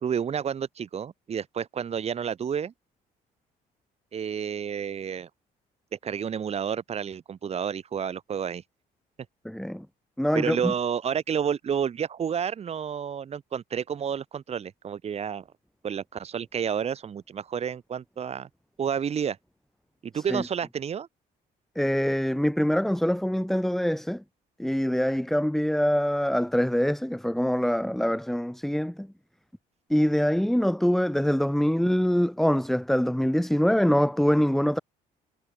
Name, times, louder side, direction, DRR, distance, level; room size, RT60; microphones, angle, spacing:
voice 1, 0.0-2.7 4.1-5.3 5.9-8.6 10.3-15.4 15.8-18.5 18.8-19.4 20.0-21.1, right 7 dB, 40° right, 1.5 m, -30 dB
voice 2, 9.4-9.9 10.2-10.7 20.1-20.4 21.8-24.2 24.6-29.1 29.9-34.8, equal, ahead, 2.3 m, -24 dB
cardioid pair, 110°, 17 cm